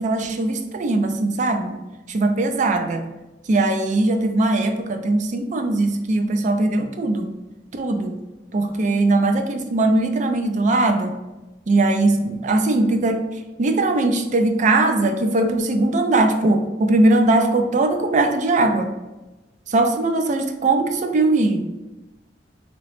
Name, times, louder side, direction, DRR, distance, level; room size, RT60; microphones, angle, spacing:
voice 1, 0.0-1.8 2.1-3.1 3.5-7.3 7.7-8.2 8.5-11.2 11.7-18.9 19.7-21.7, right 2 dB, 45° right, 6 dB, 0.4 m, -20 dB
3.0 x 2.9 x 3.1 m, 1.1 s
head